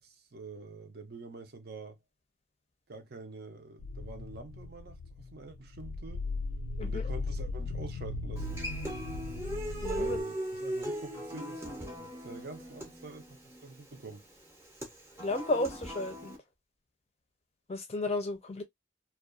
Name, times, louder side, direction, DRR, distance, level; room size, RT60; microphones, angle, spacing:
voice 1, 0.0-2.0 2.9-6.2 6.8-8.7 10.0-14.3, right 3 dB, 50° right, 0.5 m, -46 dB
sound 1, 3.8-10.2, left 3 dB, 85° left, 0.4 m, -37 dB
Human voice / Acoustic guitar, 8.4-16.4, right 1 dB, 15° right, 0.7 m, -39 dB
voice 2, 9.8-10.2 15.2-16.4 17.7-18.6, left 2 dB, 30° left, 0.5 m, -33 dB
2.4 x 2.2 x 2.4 m
head